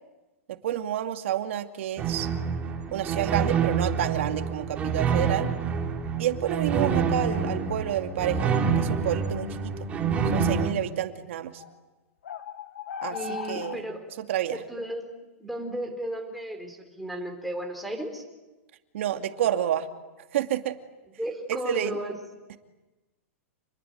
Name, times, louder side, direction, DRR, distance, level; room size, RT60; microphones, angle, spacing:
voice 1, 0.5-2.3 2.9-5.5 6.2-9.9 10.3-11.6 13.0-13.9 14.2-14.6 18.9-19.9 20.3-20.8 21.5-22.0, right 11 dB, 65° right, 6 dB, 2.5 m, -29 dB
sound 1, 2.0-10.7, right 6 dB, 20° right, 2.6 m, -27 dB
sound 2, 11.6-11.7 12.2-13.8, left 7 dB, 80° left, 2.5 m, -36 dB
voice 2, 13.1-14.1 14.5-18.2 21.2-22.1, right 1 dB, ahead, 6 dB, 4.2 m, -34 dB
29.0 x 21.5 x 9.3 m, 1.1 s
supercardioid pair, 160°, 7 cm